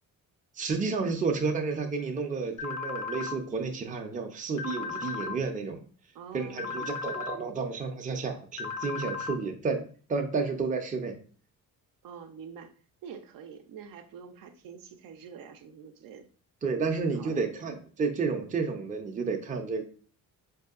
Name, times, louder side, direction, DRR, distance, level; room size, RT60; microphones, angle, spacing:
voice 1, 0.6-5.8 6.3-11.1 16.6-19.8, right 4 dB, 25° right, 3 dB, 0.5 m, -31 dB
sound 1, 2.6-3.4 4.6-5.4 6.6-7.4 8.6-9.4, left 5 dB, 55° left, 0.6 m, -35 dB
voice 2, 6.1-6.8 12.0-12.7 13.0-16.3 17.1-17.5, right 6 dB, 70° right, 6 dB, 0.5 m, -46 dB
4.5 x 2.7 x 2.4 m, 0.42 s
cardioid pair, 125°, 35 cm